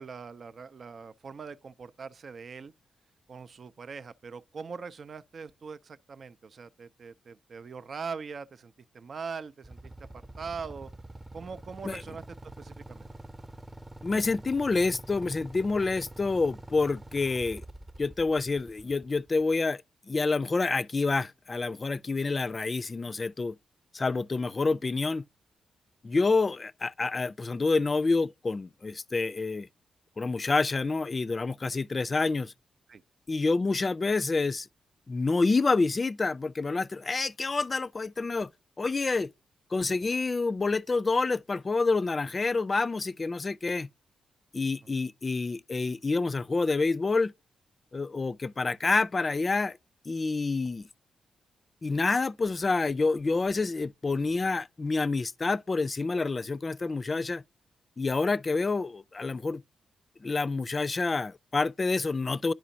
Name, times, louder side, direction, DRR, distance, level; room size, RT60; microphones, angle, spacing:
voice 1, 0.0-2.7 3.3-9.9 10.4-10.9 11.3-12.2 12.6-13.1 32.9-33.0, right 5 dB, 55° right, 0.5 m, -41 dB
Motorcycle / Idling, 9.6-19.6, right 1 dB, 25° right, 0.9 m, -46 dB
voice 2, 14.0-17.6 18.0-19.8 20.1-23.6 23.9-25.2 26.0-29.7 30.2-32.5 33.3-34.7 35.1-38.5 38.8-39.3 39.7-43.9 44.5-47.3 47.9-49.8 50.1-50.9 51.8-57.4 58.0-59.6 60.2-62.5, left 3 dB, 40° left, 0.4 m, -28 dB
10.5 x 4.9 x 2.7 m
hypercardioid pair, 40°, 0 cm